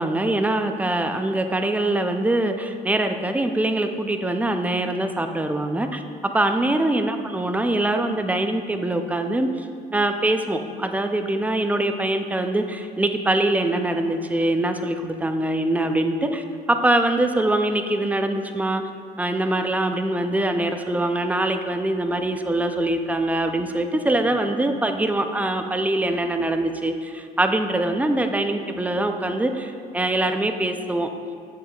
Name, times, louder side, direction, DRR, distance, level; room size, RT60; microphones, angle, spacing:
voice 1, 0.0-6.0 6.3-9.7 9.9-18.8 19.2-31.1, right 1 dB, 10° right, 6 dB, 0.4 m, -23 dB
7.7 x 7.3 x 2.3 m, 2.3 s
cardioid pair, 110°, 17 cm